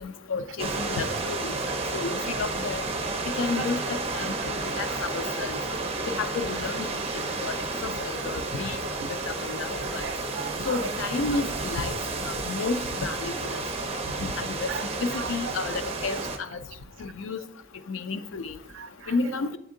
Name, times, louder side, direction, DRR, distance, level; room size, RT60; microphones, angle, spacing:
voice 1, 0.0-1.5 1.9-2.8 3.4-5.6 6.2-6.9 7.4-7.5 8.0-8.8 9.3-10.0 10.7-11.9 12.2-13.6 14.2-14.7 15.0-16.2 17.0-17.4 17.9-18.5 19.1-19.6, left 4 dB, 85° left, 10 dB, 0.5 m, -31 dB
sound 1, 0.6-16.4, right 3 dB, 30° right, 0.6 m, -31 dB
voice 2, 4.2-5.0 9.0-9.1 10.0-10.9 14.7-15.8 16.2-16.3 18.7-19.1, right 7 dB, 75° right, 12 dB, 0.4 m, -39 dB
8.0 x 3.5 x 3.7 m, 0.79 s
head